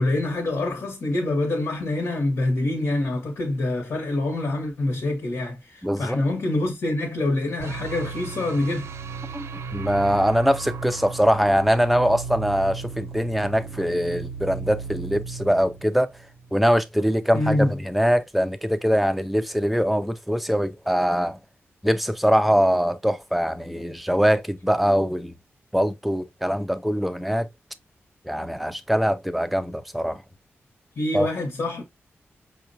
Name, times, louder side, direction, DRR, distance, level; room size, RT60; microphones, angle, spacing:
voice 1, 0.0-8.9 17.3-17.7 31.0-31.8, left 2 dB, 75° left, 1.0 m, -25 dB
voice 2, 5.8-6.2 9.3-16.1 16.5-21.4 21.8-25.3 25.7-27.5 28.3-30.2 31.1-31.3, equal, ahead, 0.4 m, -22 dB
sound 1, 7.6-16.7, right 5 dB, 75° right, 0.4 m, -36 dB
5.7 x 2.2 x 2.6 m
wide cardioid pair, 140°, 5 cm